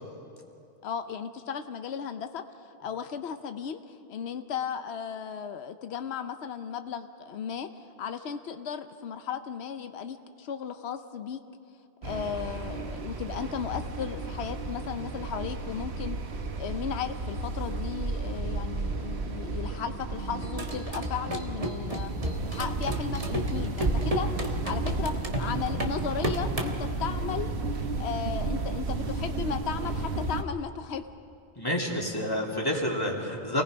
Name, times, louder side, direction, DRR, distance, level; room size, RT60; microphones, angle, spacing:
voice 1, 0.8-11.4 12.0-16.2 16.6-22.1 22.5-27.5 28.0-31.1, left 7 dB, 90° left, 9 dB, 1.0 m, -35 dB
sound 1, 12.0-30.4, right 3 dB, 85° right, 1.4 m, -33 dB
sound 2, 20.4-26.8, right 1 dB, 35° right, 1.5 m, -32 dB
voice 2, 31.6-33.6, left 1 dB, 20° left, -2 dB, 2.6 m, -29 dB
28.0 x 19.0 x 5.1 m, 2.8 s
omnidirectional pair, 1.1 m